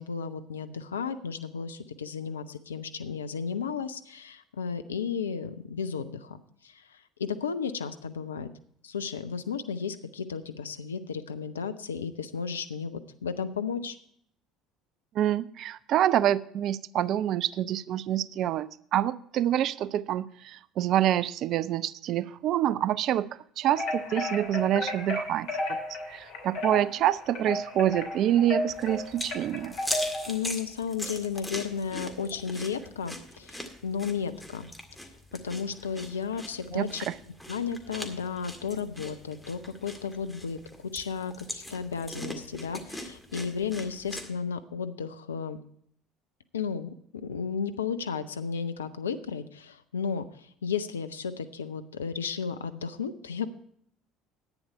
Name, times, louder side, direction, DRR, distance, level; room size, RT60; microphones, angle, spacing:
voice 1, 0.0-8.5 8.8-14.0 30.3-34.7 35.4-37.1 37.5-45.6 46.5-53.5, left 6 dB, 80° left, 11 dB, 0.6 m, -34 dB
voice 2, 15.1-23.3 23.6-25.8 26.1-29.7 36.7-37.1, right 11 dB, 50° right, 18 dB, 0.4 m, -27 dB
sound 1, 23.7-30.4, left 1 dB, 60° left, 2.6 m, -33 dB
sound 2, 28.7-44.3, left 1 dB, 5° left, 1.9 m, -41 dB
11.0 x 9.5 x 4.4 m, 0.66 s
figure-of-eight pair, 60°, 0 cm